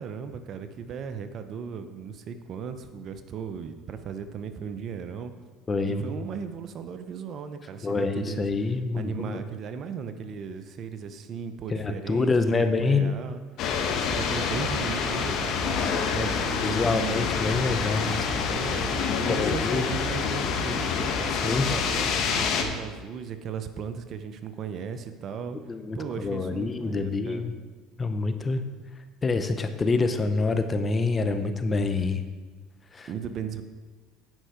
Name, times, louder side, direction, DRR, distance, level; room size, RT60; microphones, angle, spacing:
voice 1, 0.0-5.3 5.8-8.5 9.0-13.4 13.9-17.3 18.5-25.6 25.9-27.5 33.1-33.6, right 6 dB, 50° right, 10 dB, 0.7 m, -36 dB
voice 2, 5.7-6.0 7.8-9.4 11.7-13.1 16.2-18.3 19.3-19.8 21.4-21.7 25.7-27.5 28.0-28.6 29.2-32.2 32.9-33.1, left 3 dB, 30° left, 8 dB, 0.8 m, -26 dB
sound 1, 13.6-22.6, left 6 dB, 60° left, 1.0 m, -27 dB
sound 2, 14.1-22.7, equal, 5° right, 2.1 m, -38 dB
9.1 x 5.6 x 5.0 m, 1.4 s
supercardioid pair, 85°, 0 cm